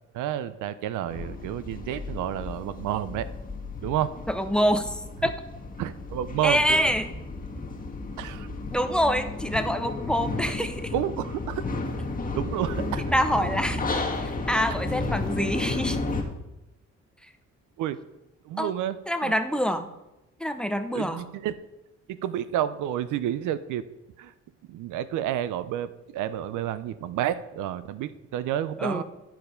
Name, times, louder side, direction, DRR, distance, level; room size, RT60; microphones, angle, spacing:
voice 1, 0.1-3.3 3.8-4.2 5.2-5.3 5.8-6.9 8.2-8.5 10.5-10.6 10.9-11.8 12.3-13.1 17.8-18.0 18.4-19.3 20.9-21.5 22.1-23.8 24.2-24.3 24.7-29.0, right 11 dB, 85° right, 14 dB, 0.6 m, -30 dB
sound 1, 1.1-16.2, left 3 dB, 30° left, 1.6 m, -33 dB
voice 2, 4.3-5.3 6.4-7.1 8.7-10.9 13.1-13.8 14.2-16.0 18.6-18.7 19.1-19.9 20.4-21.2 28.8-29.0, equal, 5° left, 9 dB, 0.7 m, -26 dB
11.5 x 4.7 x 5.0 m, 0.95 s
cardioid pair, 90°, 30 cm